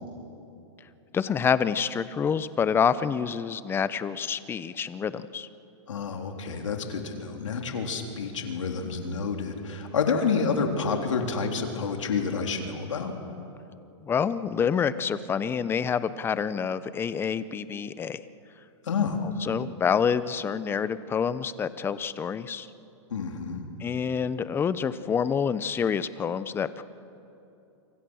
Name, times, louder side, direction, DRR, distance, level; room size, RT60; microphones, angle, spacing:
voice 1, 1.1-5.5 14.0-18.2 19.4-22.7 23.8-26.8, left 7 dB, 15° left, 15 dB, 0.7 m, -27 dB
voice 2, 5.9-13.1 18.8-19.2 23.1-23.6, left 5 dB, 90° left, 3 dB, 3.6 m, -29 dB
28.0 x 25.5 x 6.4 m, 2.8 s
hypercardioid pair, 140°, 16 cm